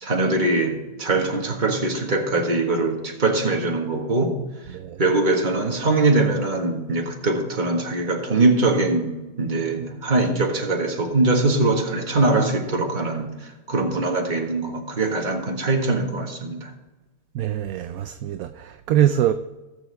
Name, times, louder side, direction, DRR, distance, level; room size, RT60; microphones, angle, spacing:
voice 1, 0.0-4.4 5.0-16.7, right 2 dB, 30° right, 1.7 m, -22 dB
voice 2, 4.7-5.0 17.3-19.3, right 12 dB, 70° right, 0.9 m, -23 dB
18.5 x 7.0 x 3.5 m
omnidirectional pair, 1.8 m